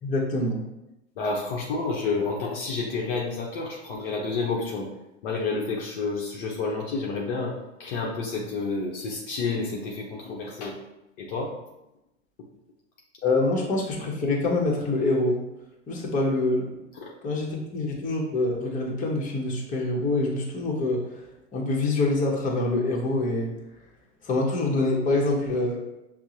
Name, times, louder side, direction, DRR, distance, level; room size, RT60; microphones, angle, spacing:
voice 1, 0.0-0.6 13.2-15.4 15.9-16.7 17.2-21.2 21.5-23.5 24.2-25.8, left 2 dB, 20° left, -2 dB, 0.9 m, -25 dB
voice 2, 1.2-4.9 5.2-10.8 11.2-11.5 16.9-17.1, left 4 dB, 45° left, -2 dB, 0.7 m, -30 dB
5.7 x 2.0 x 2.8 m, 0.93 s
figure-of-eight pair, 90°, 37 cm